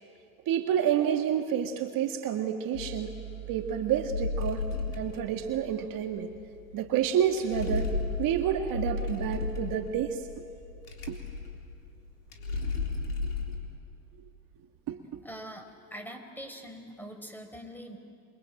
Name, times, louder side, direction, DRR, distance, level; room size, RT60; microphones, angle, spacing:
voice 1, 0.5-3.1 3.5-4.6 5.0-6.3 6.7-7.9 8.2-10.2 11.1-11.2 14.9-15.2, right 9 dB, 50° right, 5 dB, 1.9 m, -29 dB
sound 1, 2.7-13.6, left 3 dB, 90° left, 3.8 m, -35 dB
voice 2, 15.2-18.0, equal, 5° left, 6 dB, 4.9 m, -43 dB
28.0 x 24.0 x 8.9 m, 2.5 s
hypercardioid pair, 80°, 45 cm